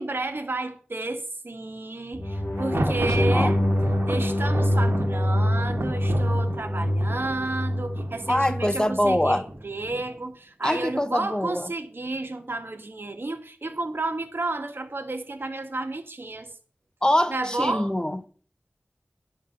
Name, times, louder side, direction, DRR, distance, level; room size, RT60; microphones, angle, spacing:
voice 1, 0.0-3.6 4.1-16.5 17.3-17.9, right 2 dB, 65° right, 2.0 m, -31 dB
sound 1, 2.1-9.4, equal, 45° left, 1.4 m, -25 dB
Thunder, 2.5-10.2, right 2 dB, 80° right, 1.7 m, -34 dB
voice 2, 2.7-3.6 8.3-9.4 10.6-11.7 17.0-18.3, left 1 dB, 20° left, 1.3 m, -24 dB
11.0 x 6.1 x 7.4 m
wide cardioid pair, 45°, 4 cm